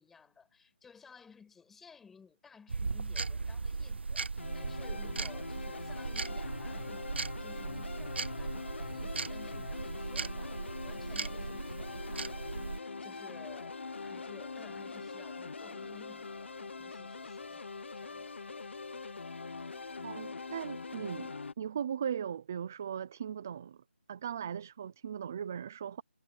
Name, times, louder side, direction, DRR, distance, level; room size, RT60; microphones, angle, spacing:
voice 1, 0.0-18.4 19.2-19.3, left 5 dB, 5° left, 5.4 m, -57 dB
sound 1, 2.7-12.8, right 4 dB, 60° right, 0.7 m, -38 dB
sound 2, 4.4-21.5, left 4 dB, 65° left, 0.8 m, -43 dB
voice 2, 20.0-23.8 24.1-26.0, right 8 dB, 15° right, 0.4 m, -38 dB
hypercardioid pair, 175°, 7 cm